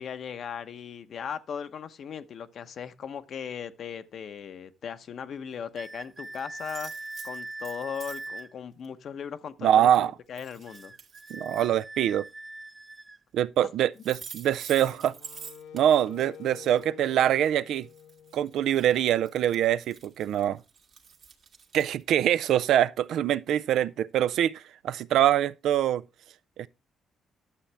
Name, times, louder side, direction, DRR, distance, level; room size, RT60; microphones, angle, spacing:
voice 1, 0.0-6.9 7.2-10.9, left 7 dB, 60° left, 0.8 m, -38 dB
sound 1, 5.8-8.5 10.7-13.2, right 2 dB, 20° right, 0.6 m, -41 dB
sound 2, 5.8-5.9 6.2-8.4 8.8-8.9 9.9-10.0 10.3-11.7 13.6-13.7 14.0-22.2, right 6 dB, 60° right, 1.7 m, -48 dB
voice 2, 9.6-10.1 11.3-12.2 13.3-15.1 15.7-17.9 18.3-20.6 21.7-26.0 26.6-26.7, right 11 dB, 75° right, 0.4 m, -24 dB
Wind instrument woodwind instrument, 14.7-19.0, left 9 dB, 90° left, 1.1 m, -48 dB
11.5 x 7.1 x 3.3 m
cardioid pair, 90°, 0 cm